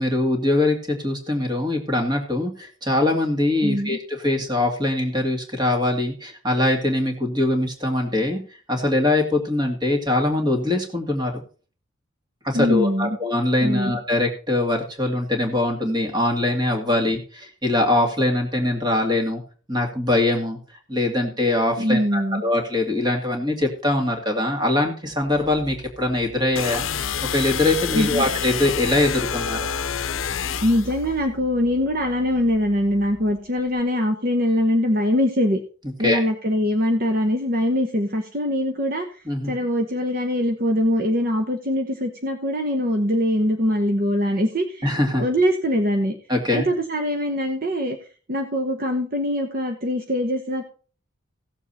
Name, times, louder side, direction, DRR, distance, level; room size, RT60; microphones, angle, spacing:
voice 1, 0.0-8.4 8.7-11.4 12.4-19.4 19.7-20.6 20.9-27.1 27.3-29.7 36.0-36.2 39.3-39.5 44.8-45.3 46.3-46.7, left 1 dB, 20° right, 3 dB, 2.2 m, -22 dB
voice 2, 3.6-4.0 12.5-13.2 13.6-13.9 21.8-22.4 27.9-28.3 30.6-35.6 36.0-44.8 45.2-46.2 46.5-48.0 48.3-50.6, equal, 45° right, 4 dB, 1.0 m, -22 dB
sound 1, 25.2-33.8, left 1 dB, 15° left, 1.2 m, -39 dB
sound 2, 26.6-31.0, left 8 dB, 80° left, 0.6 m, -28 dB
16.0 x 7.3 x 4.2 m, 0.40 s
head